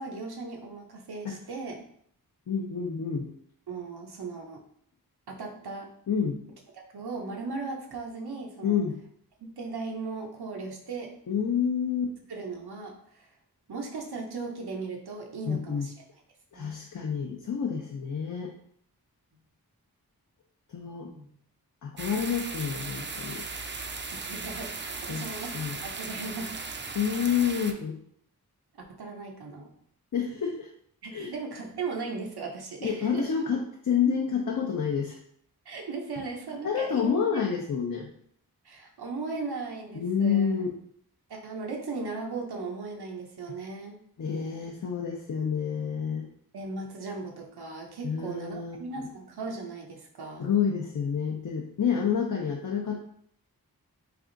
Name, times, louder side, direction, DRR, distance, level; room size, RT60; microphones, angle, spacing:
voice 1, 0.0-1.8 3.7-4.6 5.3-5.9 6.9-8.8 9.4-11.1 12.3-13.3 13.7-15.9 16.5-16.7 21.1-21.3 24.1-26.6 29.0-29.7 31.0-33.3 35.7-37.2 38.6-40.5 41.3-44.0 46.5-50.5, right 4 dB, 85° right, 1 dB, 0.7 m, -37 dB
voice 2, 2.5-3.3 6.1-6.4 8.6-9.0 11.3-12.1 15.5-15.9 16.5-18.5 20.7-21.1 21.8-23.4 25.1-25.3 25.5-25.8 26.9-28.0 30.1-30.7 31.1-31.3 32.8-35.2 36.6-38.1 39.9-40.7 44.2-46.3 48.0-48.8 50.4-53.0, left 7 dB, 55° left, 1 dB, 0.5 m, -28 dB
sound 1, 22.0-27.7, right 4 dB, 30° right, 0.4 m, -37 dB
3.3 x 2.5 x 3.7 m, 0.65 s
wide cardioid pair, 45°, 38 cm